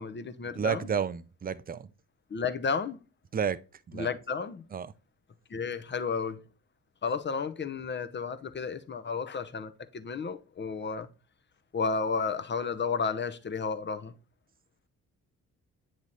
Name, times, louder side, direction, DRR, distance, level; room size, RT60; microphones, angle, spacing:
voice 1, 0.0-0.9 2.3-3.0 3.9-4.6 5.5-6.4 7.0-11.1 11.7-14.1, left 5 dB, 25° left, 0.9 m, -32 dB
voice 2, 0.5-1.9 3.3-3.6 3.9-4.1 4.7-4.9, right 7 dB, 25° right, 0.5 m, -31 dB
9.5 x 3.2 x 4.0 m
hypercardioid pair, 45°, 40 cm